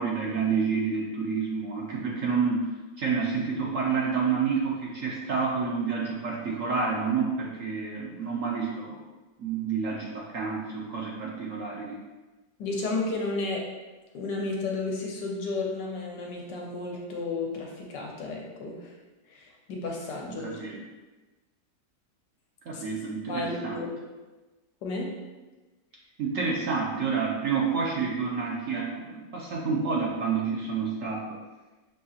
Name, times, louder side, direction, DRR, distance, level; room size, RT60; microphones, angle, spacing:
voice 1, 0.0-2.6 3.0-9.0 9.4-12.0 20.6-20.7 22.7-23.8 26.2-31.2, right 5 dB, 60° right, -3 dB, 0.9 m, -29 dB
voice 2, 12.6-13.6 14.1-19.0 19.2-20.6 22.7-22.8 23.3-24.1 24.8-25.1, left 3 dB, 80° left, -1 dB, 1.4 m, -32 dB
6.2 x 2.7 x 2.4 m, 1.2 s
omnidirectional pair, 1.9 m